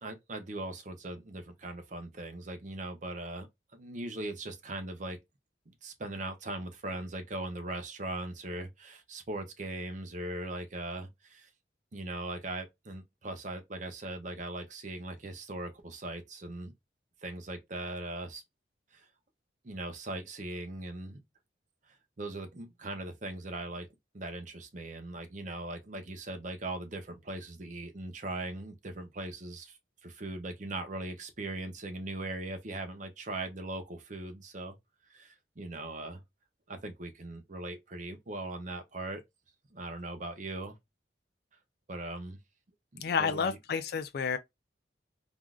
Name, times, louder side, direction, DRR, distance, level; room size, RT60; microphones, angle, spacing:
voice 1, 0.0-5.2 5.7-11.5 11.9-16.7 17.2-18.4 18.9-19.1 19.6-21.2 21.9-23.9 24.1-34.8 35.1-36.2 36.7-39.2 39.7-40.7 41.9-42.4 42.9-43.6, right 2 dB, 40° right, 0.6 m, -40 dB
voice 2, 43.0-44.4, left 6 dB, 55° left, 0.3 m, -30 dB
3.5 x 2.4 x 2.2 m
head